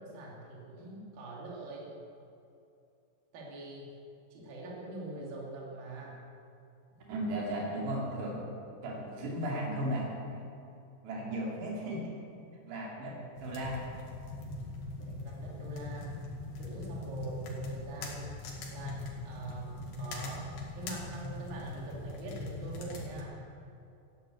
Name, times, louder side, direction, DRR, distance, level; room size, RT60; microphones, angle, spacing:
voice 1, 0.0-1.9 3.3-3.9 4.3-6.2 11.1-11.4 12.9-13.3 15.0-16.1 16.5-18.3 18.7-20.5 20.8-23.4, right 2 dB, 60° right, -3 dB, 4.1 m, -44 dB
voice 2, 7.1-8.4 8.8-10.5 11.0-12.2 12.7-13.8, right 1 dB, 85° right, -3 dB, 4.7 m, -35 dB
sound 1, 13.4-23.3, left 2 dB, 85° left, 4.1 m, -41 dB
15.0 x 10.0 x 8.0 m, 2.6 s
omnidirectional pair, 4.7 m